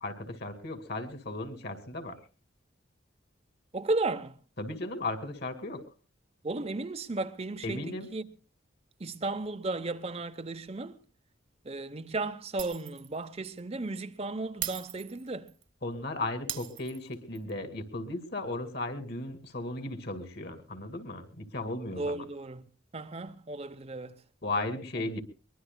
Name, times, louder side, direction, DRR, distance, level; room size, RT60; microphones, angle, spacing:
voice 1, 0.0-2.2 4.6-5.8 7.6-8.1 15.8-22.2 24.4-25.2, left 2 dB, 55° left, 2.3 m, -36 dB
voice 2, 3.7-4.4 6.4-8.3 9.0-11.0 11.6-15.5 21.9-22.6 22.9-24.2, right 2 dB, 30° right, 0.7 m, -34 dB
Shatter, 12.6-13.1 13.4-13.6 14.6-15.6 16.5-17.5, right 13 dB, 70° right, 1.5 m, -39 dB
23.0 x 21.0 x 2.2 m
head